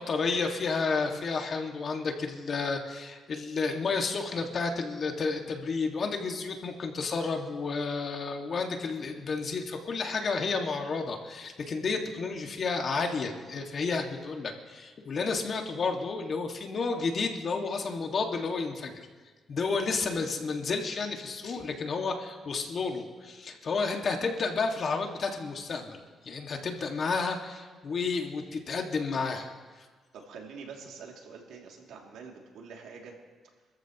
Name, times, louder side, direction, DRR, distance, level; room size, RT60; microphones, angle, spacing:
voice 1, 0.0-19.1 19.5-26.0 26.2-29.5, left 4 dB, 55° left, 3 dB, 1.9 m, -31 dB
voice 2, 30.1-33.2, right 5 dB, 90° right, 0 dB, 2.7 m, -46 dB
27.5 x 14.0 x 3.0 m, 1.5 s
cardioid pair, 80°, 0 cm